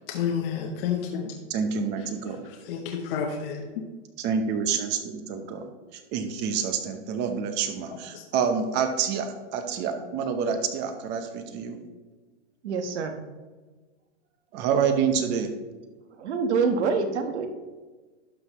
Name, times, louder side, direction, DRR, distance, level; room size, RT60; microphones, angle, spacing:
voice 1, 0.1-1.3 2.7-3.6 8.1-8.2, left 7 dB, 55° left, 2 dB, 1.0 m, -29 dB
voice 2, 1.5-2.4 4.2-5.7 5.9-11.8 14.5-15.5, right 6 dB, 30° right, 7 dB, 0.9 m, -27 dB
voice 3, 12.6-13.2 16.1-17.5, right 5 dB, 75° right, 6 dB, 1.3 m, -26 dB
11.5 x 5.8 x 3.1 m, 1.3 s
hypercardioid pair, 145°, 35 cm